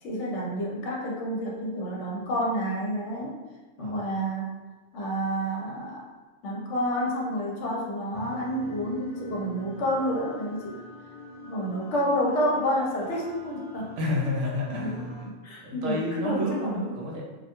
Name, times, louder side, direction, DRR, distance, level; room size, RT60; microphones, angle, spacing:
voice 1, 0.0-3.4 3.8-4.5 4.9-6.1 6.4-10.8 11.4-14.0 14.8-16.7, equal, 70° left, -2 dB, 0.8 m, -29 dB
sound 1, 8.1-15.3, right 1 dB, 50° left, 0.3 m, -42 dB
voice 2, 14.0-15.1 15.6-17.2, left 1 dB, 75° right, -2 dB, 0.9 m, -29 dB
2.3 x 2.2 x 2.8 m, 1.2 s
omnidirectional pair, 1.3 m